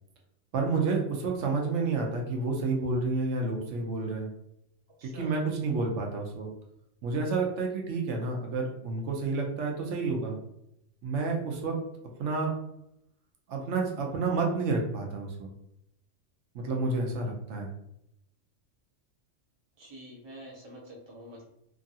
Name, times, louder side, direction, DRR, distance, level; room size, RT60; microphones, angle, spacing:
voice 1, 0.5-4.3 5.0-6.5 7.0-10.3 11.0-11.8 12.2-12.5 13.5-15.5 16.5-17.7, right 3 dB, 75° right, 0 dB, 0.9 m, -30 dB
voice 2, 5.0-5.4 19.8-21.4, equal, 30° right, -2 dB, 0.5 m, -47 dB
3.0 x 2.4 x 2.6 m, 0.78 s
omnidirectional pair, 1.3 m